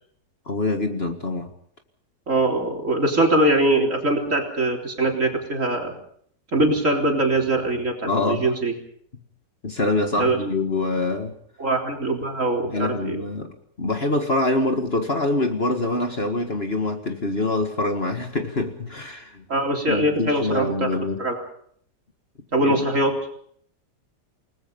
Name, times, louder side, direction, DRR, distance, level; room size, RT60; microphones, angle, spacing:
voice 1, 0.5-1.5 8.0-8.5 9.6-11.3 12.6-19.4 19.9-21.2 22.6-22.9, left 2 dB, 35° left, 5 dB, 2.1 m, -25 dB
voice 2, 2.3-5.9 6.5-8.7 10.2-10.4 11.6-13.2 19.5-21.4 22.5-23.2, right 1 dB, 45° right, 2 dB, 4.0 m, -22 dB
29.5 x 19.5 x 5.5 m, 0.63 s
omnidirectional pair, 1.9 m